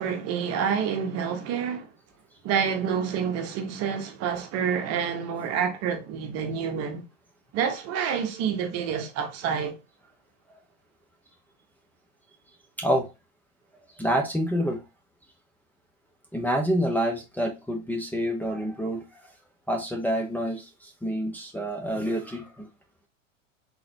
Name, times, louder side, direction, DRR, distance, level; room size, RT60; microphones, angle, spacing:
voice 1, 0.0-1.9 2.4-7.0 7.5-9.8, right 7 dB, 40° right, 1.1 m, -28 dB
voice 2, 12.8-13.1 14.0-14.8 16.3-19.3 19.7-22.7, equal, 5° left, 0.8 m, -27 dB
4.0 x 3.9 x 2.8 m
hypercardioid pair, 100°, 39 cm